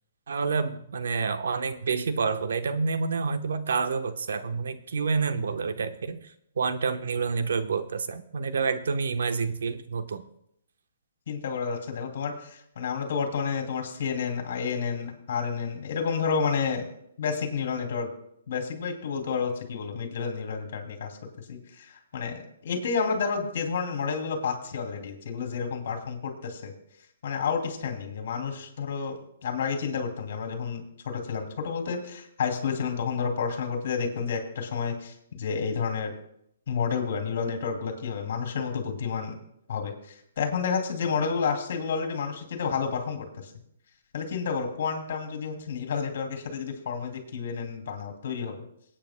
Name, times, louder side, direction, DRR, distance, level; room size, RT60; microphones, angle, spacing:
voice 1, 0.3-6.2 6.6-10.2, right 5 dB, 75° right, 9 dB, 1.0 m, -28 dB
voice 2, 11.3-16.9 17.2-18.1 18.5-26.7 27.2-29.2 29.4-36.1 36.7-39.4 39.7-43.5 44.1-48.6, left 6 dB, 60° left, 4 dB, 2.6 m, -30 dB
24.5 x 8.8 x 2.2 m, 0.73 s
hypercardioid pair, 155°, 0 cm